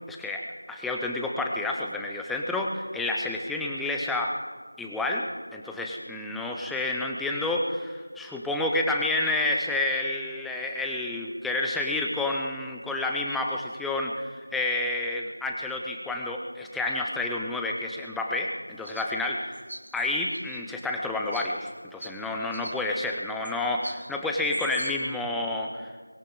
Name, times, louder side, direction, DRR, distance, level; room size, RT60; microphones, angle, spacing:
voice 1, 0.1-4.4 4.8-19.6 19.9-25.9, left 2 dB, ahead, 0 dB, 0.4 m, -29 dB
sound 1, 18.8-19.1 19.5-20.6 21.3-21.7 22.0-22.1 22.5-22.8 23.4-23.5 23.8-24.1 24.5-24.9, right 1 dB, 50° right, 1.7 m, -41 dB
23.0 x 16.5 x 3.7 m, 1.5 s
figure-of-eight pair, 170°, 0 cm